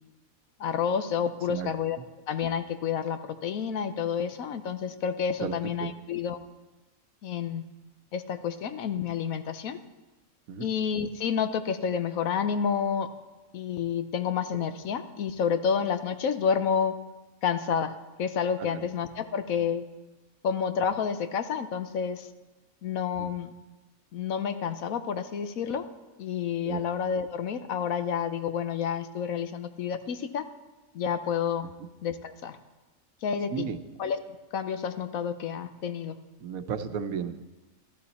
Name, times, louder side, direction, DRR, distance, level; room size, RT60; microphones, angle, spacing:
voice 1, 0.6-2.0 2.3-6.4 7.2-7.6 8.1-9.8 10.6-13.1 13.5-16.9 17.4-19.8 20.4-22.3 22.8-23.5 24.1-25.9 26.2-30.5 30.9-31.7 32.0-32.6 33.2-33.7 34.0-34.2 34.5-36.2, left 7 dB, 75° left, 10 dB, 1.2 m, -29 dB
voice 2, 36.4-37.4, right 7 dB, 75° right, 9 dB, 1.2 m, -33 dB
15.0 x 13.0 x 4.2 m, 1.1 s
omnidirectional pair, 1.5 m